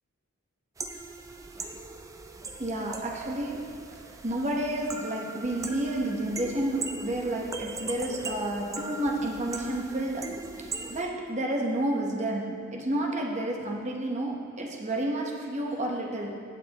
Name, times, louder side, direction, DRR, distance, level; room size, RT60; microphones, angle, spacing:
sound 1, 0.8-11.0, right 3 dB, 15° right, 0.3 m, -39 dB
voice 1, 2.6-16.4, right 1 dB, 30° right, 0 dB, 0.9 m, -31 dB
15.5 x 6.4 x 2.9 m, 2.2 s
head